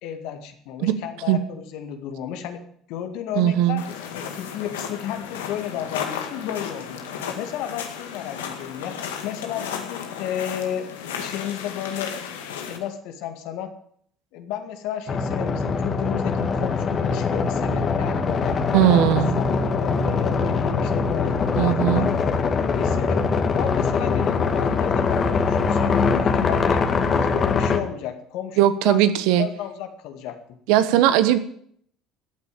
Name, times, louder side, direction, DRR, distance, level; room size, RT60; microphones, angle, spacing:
voice 1, 0.0-2.6 2.9-7.0 7.4-8.9 9.2-10.8 11.2-12.1 12.7-13.7 14.3-18.5 18.8-19.1 19.4-23.2 23.6-26.8 27.1-29.0 29.4-30.4, left 10 dB, 70° left, 7 dB, 2.0 m, -33 dB
voice 2, 3.3-3.8 18.7-19.4 21.6-22.1 28.6-29.5 30.7-31.4, right 12 dB, 75° right, 12 dB, 1.2 m, -18 dB
sound 1, 3.8-12.8, left 7 dB, 90° left, 1.9 m, -34 dB
sound 2, 15.1-27.8, left 5 dB, 40° left, 2.0 m, -22 dB
14.0 x 8.6 x 9.0 m, 0.65 s
hypercardioid pair, 75°, 0 cm